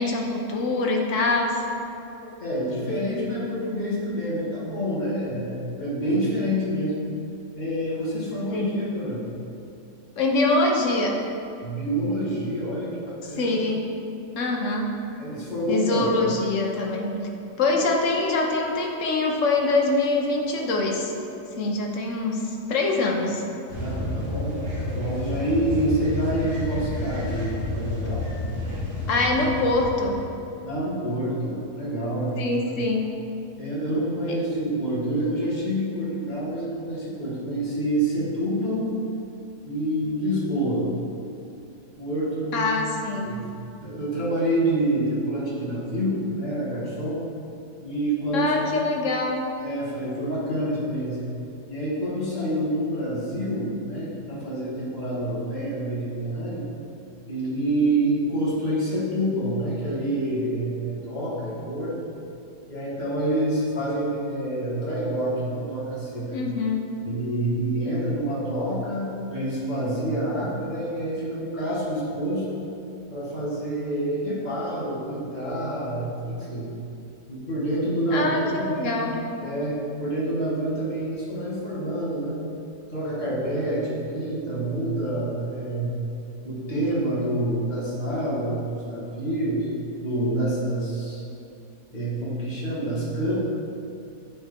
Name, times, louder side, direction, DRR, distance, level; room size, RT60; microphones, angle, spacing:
voice 1, 0.0-1.6 8.5-8.8 10.2-11.2 13.3-13.8 14.4-14.9 15.7-17.1 17.6-21.1 21.6-23.4 29.1-30.2 32.4-33.1 34.3-34.4 42.5-43.3 48.3-49.5 66.3-66.9 78.1-79.1, left 2 dB, 60° left, 1 dB, 1.0 m, -24 dB
voice 2, 2.4-7.0 7.5-9.2 11.6-13.6 15.2-16.1 23.7-28.2 30.6-32.6 33.6-38.9 39.7-40.9 42.0-42.7 43.2-43.4 43.8-47.2 47.8-48.8 49.6-51.2 51.7-56.6 57.3-61.9 62.7-66.3 67.1-72.5 73.1-76.7 77.3-79.0 79.4-82.4 82.9-86.0 86.4-89.7 90.0-91.3 91.9-93.3, right 1 dB, 30° left, -7 dB, 1.6 m, -27 dB
sound 1, 23.7-30.5 33.1-33.2, left 1 dB, 75° right, 1.9 m, -30 dB
9.7 x 4.1 x 3.6 m, 2.7 s
omnidirectional pair, 1.7 m